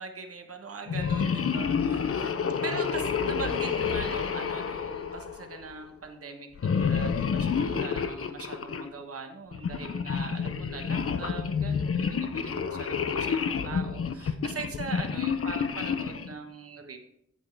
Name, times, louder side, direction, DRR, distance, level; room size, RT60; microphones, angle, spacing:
voice 1, 0.0-2.3 2.6-17.0, right 4 dB, 50° right, 4 dB, 1.2 m, -41 dB
sound 1, 0.9-5.7 6.6-8.9 9.5-16.3, left 6 dB, 50° left, 0.6 m, -29 dB
9.1 x 8.1 x 3.4 m, 0.74 s
wide cardioid pair, 105°, 29 cm